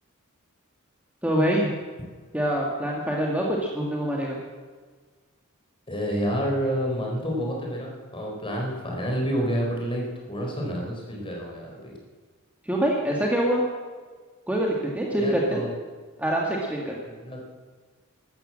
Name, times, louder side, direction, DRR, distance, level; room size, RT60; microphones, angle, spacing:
voice 1, 1.2-1.7 2.3-4.4 12.6-13.6 14.5-15.6 16.2-16.9, right 1 dB, 5° right, -2 dB, 1.8 m, -25 dB
voice 2, 5.9-12.0 15.2-15.7 17.2-17.4, equal, 25° left, -1 dB, 4.4 m, -29 dB
14.0 x 13.0 x 7.5 m, 1.5 s
head